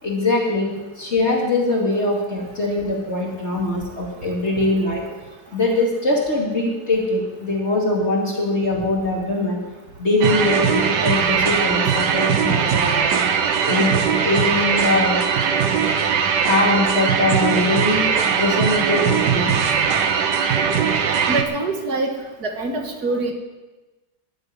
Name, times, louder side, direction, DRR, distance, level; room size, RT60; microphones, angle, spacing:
voice 1, 0.0-5.1 5.5-9.6 10.0-13.1 13.7-15.2 16.5-19.6, left 2 dB, 40° left, -2 dB, 2.6 m, -22 dB
sound 1, 10.2-21.4, right 7 dB, 80° right, 1.7 m, -20 dB
voice 2, 21.3-23.3, right 2 dB, 60° right, 3 dB, 2.2 m, -25 dB
12.5 x 8.1 x 9.6 m, 1.1 s
omnidirectional pair, 1.8 m